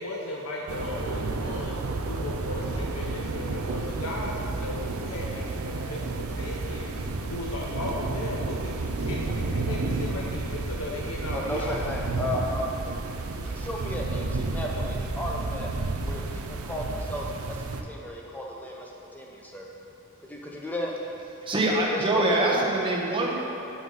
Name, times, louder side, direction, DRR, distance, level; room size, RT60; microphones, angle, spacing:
voice 1, 0.0-1.8 2.1-7.0 7.3-11.9, left 1 dB, 90° left, -2 dB, 0.8 m, -36 dB
sound 1, 0.7-17.8, right 3 dB, 90° right, 0.6 m, -31 dB
voice 2, 11.3-15.7 16.1-17.6 17.8-19.7 20.3-20.9 21.9-22.3 22.6-22.7, left 1 dB, 10° left, -2 dB, 0.8 m, -34 dB
voice 3, 21.4-23.3, right 2 dB, 25° right, -3 dB, 1.1 m, -24 dB
8.0 x 5.7 x 5.5 m, 2.8 s
head